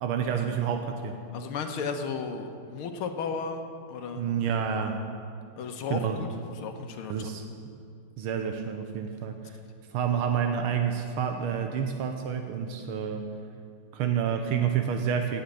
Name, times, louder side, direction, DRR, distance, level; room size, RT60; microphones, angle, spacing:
voice 1, 0.0-1.2 4.1-5.0 5.9-6.2 7.1-7.4 8.2-9.6 9.9-13.3 13.9-15.4, right 7 dB, 80° right, 5 dB, 1.7 m, -29 dB
voice 2, 1.3-3.6 3.9-4.2 5.6-6.3 6.6-7.3, left 5 dB, 85° left, 5 dB, 1.9 m, -34 dB
17.0 x 6.4 x 8.4 m, 2.4 s
omnidirectional pair, 2.3 m